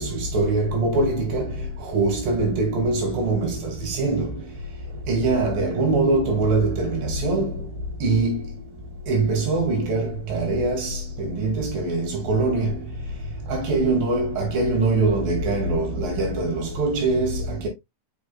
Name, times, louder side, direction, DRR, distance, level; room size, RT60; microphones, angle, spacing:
voice 1, 0.0-1.5 1.9-4.3 5.1-7.6 8.0-8.5 9.1-12.8 13.5-17.7, right 3 dB, 55° right, 3.5 m, -23 dB
6.5 x 6.2 x 2.3 m
omnidirectional pair, 5.2 m